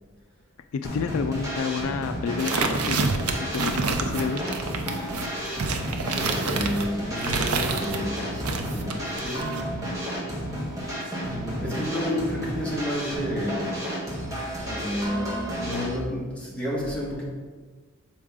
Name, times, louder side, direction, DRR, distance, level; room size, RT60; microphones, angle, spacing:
voice 1, 0.7-4.4, left 5 dB, 70° left, 9 dB, 0.3 m, -30 dB
sound 1, 0.8-16.0, equal, 15° right, 1.2 m, -32 dB
sound 2, 2.4-8.0 8.4-9.6, right 4 dB, 90° right, 0.6 m, -28 dB
voice 2, 5.9-9.7 11.2-13.7 14.6-17.3, left 1 dB, 5° left, -6 dB, 1.3 m, -31 dB
6.3 x 4.6 x 3.6 m, 1.5 s
head